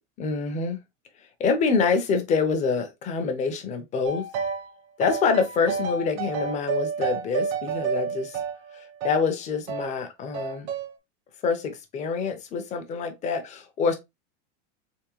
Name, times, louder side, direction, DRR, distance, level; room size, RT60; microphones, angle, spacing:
voice 1, 0.2-0.8 1.4-4.3 5.0-8.4 8.7-10.7 11.4-14.0, left 5 dB, 20° left, 0.6 m, -26 dB
sound 1, 4.1-4.7 5.0-9.3 9.7-9.9 10.3-10.9, right 6 dB, 65° right, 0.9 m, -30 dB
3.6 x 3.1 x 2.9 m
supercardioid pair, 160°, 35 cm